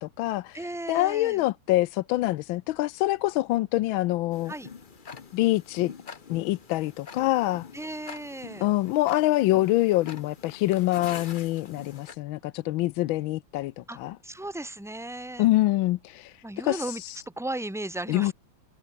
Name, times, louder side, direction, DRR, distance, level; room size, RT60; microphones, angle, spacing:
voice 1, 0.0-4.5 5.3-5.9 6.3-7.7 8.6-14.2 15.4-17.2 18.1-18.3, left 17 dB, 85° left, 1.4 m, -25 dB
voice 2, 0.5-1.4 4.5-4.7 7.7-8.7 13.9-14.0 14.2-15.5 16.4-18.3, right 1 dB, ahead, 2.3 m, -35 dB
Tick-tock, 4.3-12.2, left 6 dB, 35° left, 0.8 m, -45 dB
omnidirectional pair, 2.2 m